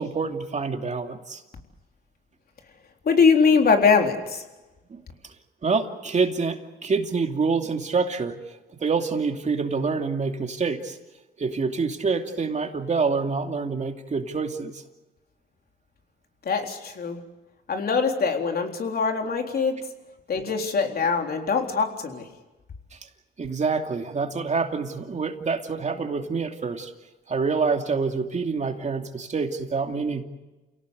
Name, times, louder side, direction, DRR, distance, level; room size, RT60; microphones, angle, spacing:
voice 1, 0.0-1.4 4.9-5.0 5.6-8.4 8.8-11.0 11.4-14.8 23.4-26.9 27.3-30.2, right 4 dB, 35° right, 4 dB, 2.7 m, -26 dB
voice 2, 3.1-4.4 16.5-17.2 17.7-19.8 20.3-22.2, left 5 dB, 50° left, 3 dB, 3.9 m, -22 dB
29.0 x 18.0 x 8.3 m, 1.1 s
cardioid pair, 90°, 20 cm